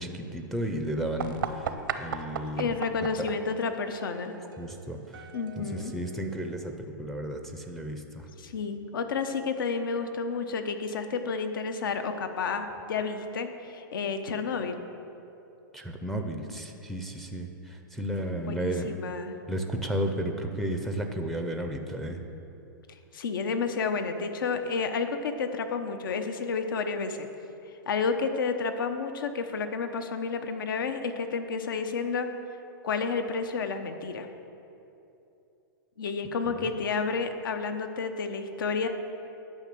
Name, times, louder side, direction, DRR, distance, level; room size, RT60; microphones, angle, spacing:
voice 1, 0.0-1.7 2.0-2.7 3.2-3.3 4.6-5.3 5.6-8.3 15.7-18.9 19.5-22.2 36.5-36.6, right 1 dB, ahead, 4 dB, 0.5 m, -33 dB
sound 1, 1.2-6.7, right 7 dB, 80° right, 0.8 m, -38 dB
voice 2, 2.6-4.3 5.3-5.9 8.4-14.8 18.5-19.4 23.1-27.3 27.9-32.3 32.8-34.3 36.0-38.9, left 5 dB, 75° left, 8 dB, 1.0 m, -30 dB
10.5 x 5.5 x 7.6 m, 2.8 s
hypercardioid pair, 160°, 11 cm